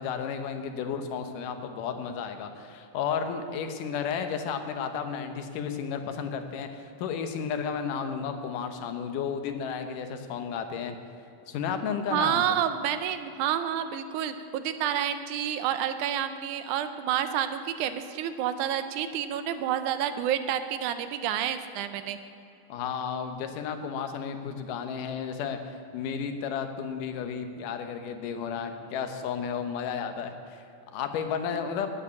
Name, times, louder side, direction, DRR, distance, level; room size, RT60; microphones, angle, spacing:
voice 1, 0.0-11.0 11.5-12.6 22.7-30.6 30.9-31.9, left 7 dB, 85° left, 7 dB, 2.5 m, -33 dB
voice 2, 12.1-22.2, right 10 dB, 80° right, 10 dB, 2.1 m, -29 dB
9.8 x 9.6 x 8.3 m, 2.8 s
omnidirectional pair, 3.7 m